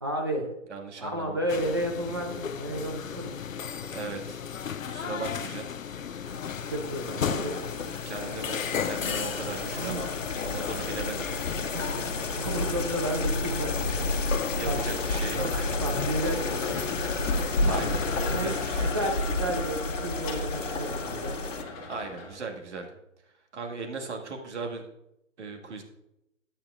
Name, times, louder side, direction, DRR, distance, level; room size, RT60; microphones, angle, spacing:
voice 1, 0.0-0.5 1.0-3.4 6.7-7.5 9.7-10.0 11.7-12.1 12.3-14.1 14.4-14.8 15.8-16.6 17.6-17.9 18.3-21.3, right 1 dB, 20° right, 2 dB, 0.5 m, -32 dB
voice 2, 0.7-1.4 3.6-4.4 4.9-6.2 7.2-10.1 10.4-11.3 14.5-15.8 16.7-17.0 17.6-19.0 21.9-22.9 23.5-24.9 25.4-25.8, right 4 dB, 60° right, 3 dB, 1.9 m, -38 dB
sound 1, 1.5-18.7, left 8 dB, 85° left, 0.6 m, -35 dB
sound 2, 6.3-21.6, left 2 dB, 70° left, 1.3 m, -31 dB
sound 3, 8.1-22.5, left 4 dB, 15° left, 1.2 m, -39 dB
12.0 x 8.8 x 2.4 m, 0.84 s
figure-of-eight pair, 150°, 39 cm